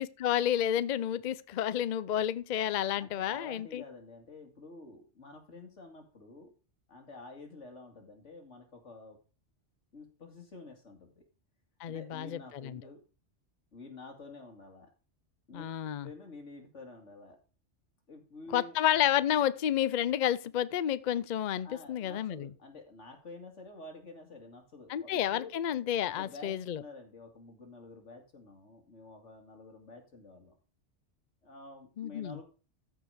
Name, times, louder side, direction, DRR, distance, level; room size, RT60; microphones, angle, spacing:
voice 1, 0.0-3.8 11.8-12.8 15.5-16.1 18.5-22.5 24.9-26.8 32.0-32.4, left 11 dB, 55° left, 0.5 m, -30 dB
voice 2, 3.0-6.5 6.9-9.2 9.9-11.2 11.9-13.0 13.7-14.9 15.5-15.7 16.0-17.4 18.1-18.8 21.6-25.5 26.1-30.5 31.4-32.4, left 3 dB, 90° left, 2.5 m, -49 dB
14.0 x 4.9 x 5.0 m
omnidirectional pair, 1.2 m